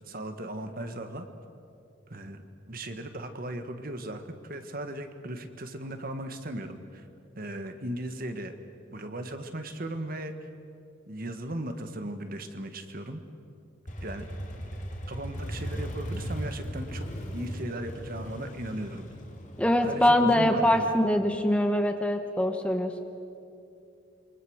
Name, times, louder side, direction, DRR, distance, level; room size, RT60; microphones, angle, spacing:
voice 1, 0.1-1.3 2.1-2.4 2.7-7.1 7.4-8.5 8.9-10.4 11.1-13.2 14.0-14.3 15.1-17.1 17.3-19.1 19.8-20.8, right 1 dB, 45° right, 7 dB, 1.7 m, -37 dB
Motorcycle, 13.9-21.5, equal, 40° left, 2.6 m, -38 dB
voice 2, 19.6-22.9, left 1 dB, 5° left, 5 dB, 1.2 m, -23 dB
28.0 x 24.0 x 6.5 m, 2.6 s
head